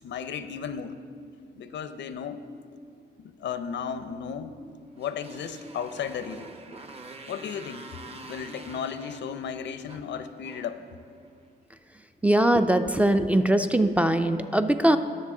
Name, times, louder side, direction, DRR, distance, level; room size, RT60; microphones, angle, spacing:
voice 1, 0.0-1.0 1.6-2.5 3.2-4.6 5.0-6.5 7.3-10.8, left 7 dB, 90° left, 11 dB, 0.6 m, -35 dB
Motorcycle, 4.9-11.5, right 3 dB, 35° right, 0.8 m, -46 dB
voice 2, 12.2-15.0, right 1 dB, 10° right, 9 dB, 0.3 m, -21 dB
18.5 x 6.5 x 3.7 m, 2.2 s
wide cardioid pair, 150°, 18 cm